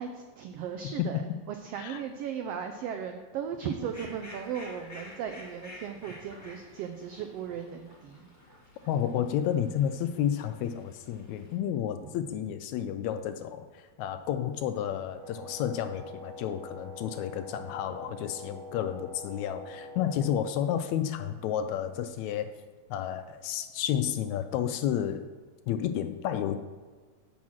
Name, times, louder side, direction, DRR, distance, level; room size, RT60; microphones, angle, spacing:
voice 1, 0.0-8.3 12.0-12.1 12.8-12.9 18.1-18.2, right 7 dB, 85° right, 5 dB, 1.3 m, -37 dB
Fowl, 3.8-11.6, left 1 dB, 15° left, 0.6 m, -50 dB
voice 2, 8.9-22.5 22.9-25.3 25.7-26.6, left 10 dB, 80° left, 9 dB, 1.7 m, -31 dB
Wind instrument woodwind instrument, 15.1-20.5, left 1 dB, 50° right, 1.5 m, -45 dB
6.2 x 6.1 x 7.2 m, 1.4 s
omnidirectional pair, 3.5 m